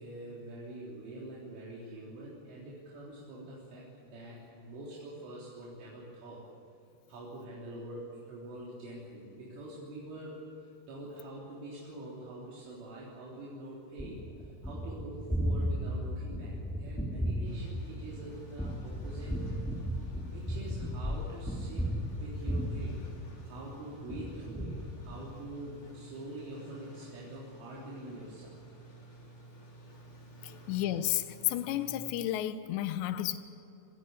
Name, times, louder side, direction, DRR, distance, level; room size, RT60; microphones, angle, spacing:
voice 1, 0.0-6.5 7.1-10.5 10.9-19.4 20.2-23.0 23.4-28.6 30.3-30.5, right 1 dB, 70° right, -6 dB, 6.0 m, -45 dB
Gunshot gunfire, 14.0-23.7 24.1-25.5, equal, ahead, 1.6 m, -35 dB
sound 1, 17.4-31.9, right 2 dB, 40° left, 6.2 m, -52 dB
voice 2, 30.4-33.4, left 13 dB, 75° left, 11 dB, 2.8 m, -32 dB
28.5 x 16.0 x 8.1 m, 2.9 s
omnidirectional pair, 5.9 m